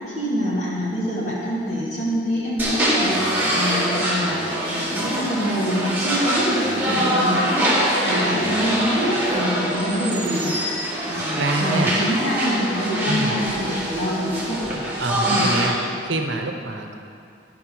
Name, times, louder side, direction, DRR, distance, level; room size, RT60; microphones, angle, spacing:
voice 1, 0.1-10.5 11.1-14.7 15.3-15.4, equal, 40° left, -6 dB, 2.6 m, -25 dB
sound 1, 2.6-15.7, equal, 10° right, 1.7 m, -24 dB
voice 2, 11.3-11.9 13.1-13.4 15.0-15.8 16.0-17.0, right 2 dB, 80° right, 4 dB, 1.0 m, -26 dB
13.0 x 5.9 x 5.4 m, 2.5 s
head